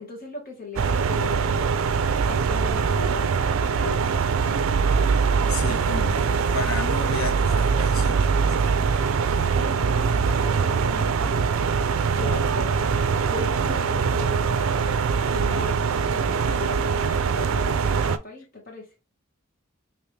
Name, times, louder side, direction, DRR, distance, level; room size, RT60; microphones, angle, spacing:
voice 1, 0.0-1.9 2.2-4.2 9.5-18.9, left 3 dB, 45° left, 1.4 m, -39 dB
sound 1, 0.8-18.2, right 5 dB, 75° right, 0.4 m, -23 dB
voice 2, 5.4-8.9, left 4 dB, 75° left, 0.6 m, -34 dB
3.3 x 2.9 x 3.2 m
head